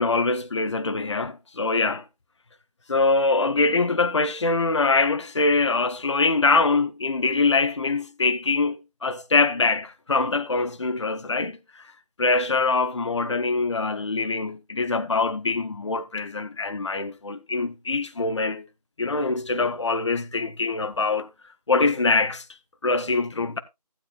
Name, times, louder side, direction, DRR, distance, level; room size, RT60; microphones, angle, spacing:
voice 1, 0.0-2.0 2.9-11.8 12.2-18.7 19.0-21.3 21.7-22.4 22.8-23.6, left 3 dB, 45° left, 0.7 m, -23 dB
15.0 x 8.1 x 2.3 m
figure-of-eight pair, 175°, 20 cm